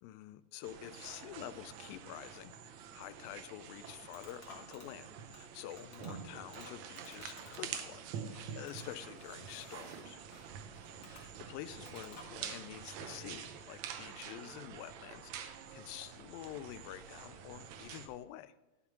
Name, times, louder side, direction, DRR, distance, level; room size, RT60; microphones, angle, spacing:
voice 1, 0.0-10.3 11.1-18.5, left 13 dB, 90° left, 14 dB, 2.3 m, -48 dB
sound 1, 0.6-18.1, right 7 dB, 75° right, 1.6 m, -47 dB
sound 2, 3.4-12.8, left 2 dB, 35° left, 1.7 m, -57 dB
11.5 x 5.9 x 5.7 m, 1.1 s
omnidirectional pair, 4.0 m